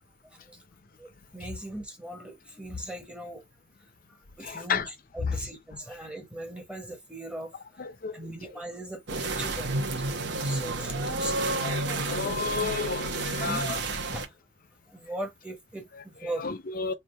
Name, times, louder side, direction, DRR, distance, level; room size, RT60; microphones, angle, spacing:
voice 1, 0.3-0.6 1.0-3.4 4.1-7.5 8.1-10.1 10.4-12.4 12.6-12.7 13.3-13.6 14.1-14.3 14.9-16.5, right 1 dB, 5° right, 1.1 m, -40 dB
voice 2, 4.4-4.9 5.3-5.4 7.8-8.3 11.6-13.8 16.4-16.9, left 5 dB, 45° left, 0.6 m, -32 dB
sound 1, 9.1-14.3, right 2 dB, 60° right, 1.0 m, -30 dB
3.4 x 2.6 x 4.2 m
head